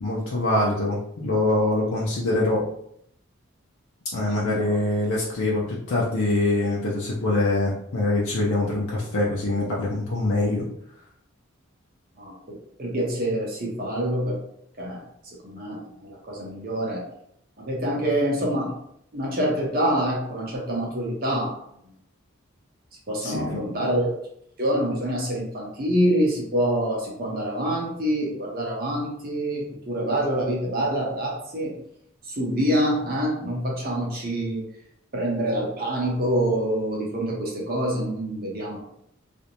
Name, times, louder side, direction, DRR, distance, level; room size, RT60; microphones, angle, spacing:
voice 1, 0.0-2.6 4.1-10.7 23.2-23.8, left 2 dB, 75° left, -5 dB, 0.5 m, -24 dB
voice 2, 4.4-4.7 12.2-12.4 12.8-14.4 14.8-15.0 15.4-17.0 17.6-18.7 19.1-21.6 23.1-24.1 24.6-31.7 32.3-34.6 35.1-38.8, right 1 dB, 45° right, -3 dB, 0.7 m, -26 dB
2.5 x 2.1 x 2.9 m, 0.71 s
head